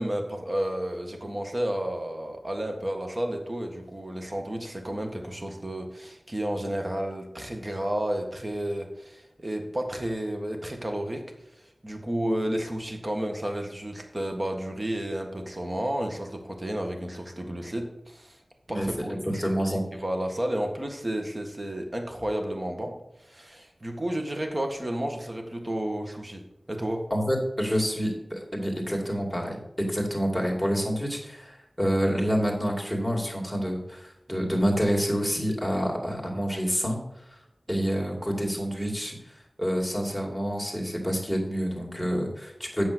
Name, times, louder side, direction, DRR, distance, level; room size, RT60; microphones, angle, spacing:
voice 1, 0.0-11.2 11.6-18.4 18.7-19.5 19.9-22.9 23.2-26.4 26.7-27.1, right 1 dB, 35° right, 4 dB, 1.7 m, -31 dB
voice 2, 19.2-19.8 27.1-37.0 37.7-39.1 39.6-42.9, equal, 5° right, -1 dB, 2.7 m, -27 dB
8.5 x 6.5 x 6.2 m, 0.83 s
wide cardioid pair, 65°, 0 cm